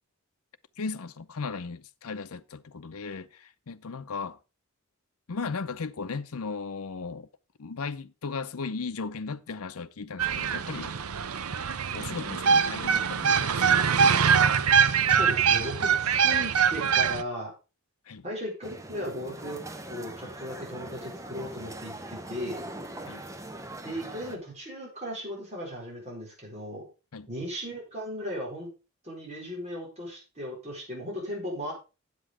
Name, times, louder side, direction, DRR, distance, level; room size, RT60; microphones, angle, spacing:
voice 1, 0.8-4.4 5.3-7.3 7.6-10.9 11.9-13.6 18.1-18.2 23.1-23.2 27.1-27.3, left 4 dB, 80° left, 0.6 m, -36 dB
sound 1, 10.2-17.2, right 6 dB, 80° right, 0.7 m, -23 dB
voice 2, 14.9-17.5 18.2-22.6 23.8-26.9 27.3-28.7 29.0-31.7, equal, 30° right, 4.6 m, -37 dB
sound 2, 18.6-24.4, right 1 dB, 15° right, 0.8 m, -41 dB
8.2 x 8.0 x 4.8 m
head